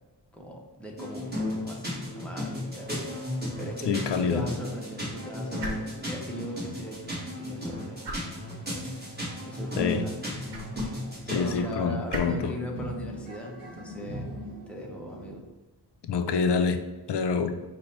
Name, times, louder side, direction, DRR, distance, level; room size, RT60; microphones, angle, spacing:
voice 1, 0.3-3.3 3.6-8.2 8.7-9.0 9.4-10.6 11.3-14.3 14.7-15.5, equal, 5° left, -1 dB, 0.6 m, -39 dB
sound 1, 1.0-11.5, left 1 dB, 25° right, 1.4 m, -35 dB
voice 2, 3.9-4.5 9.8-10.1 11.3-12.5 16.0-16.8 17.1-17.6, left 5 dB, 80° left, 7 dB, 0.5 m, -26 dB
sound 2, 5.5-16.1, right 1 dB, 75° right, 0.9 m, -46 dB
sound 3, 8.9-9.1 9.3-15.4, equal, 55° right, 1.5 m, -43 dB
5.3 x 2.1 x 4.2 m, 1.1 s
wide cardioid pair, 170°, 41 cm